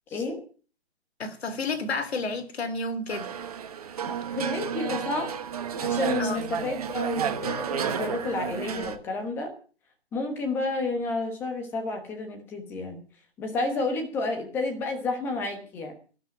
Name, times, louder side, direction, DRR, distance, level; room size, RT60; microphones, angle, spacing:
voice 1, 1.2-3.3 6.2-6.4, left 3 dB, 65° left, 2.9 m, -31 dB
sound 1, 3.1-9.0, right 8 dB, 35° right, 1.1 m, -31 dB
voice 2, 4.1-5.3 5.8-9.5 10.1-13.0 13.4-15.9, left 3 dB, 5° left, 1.1 m, -31 dB
13.0 x 12.0 x 6.1 m
hypercardioid pair, 170°, 35 cm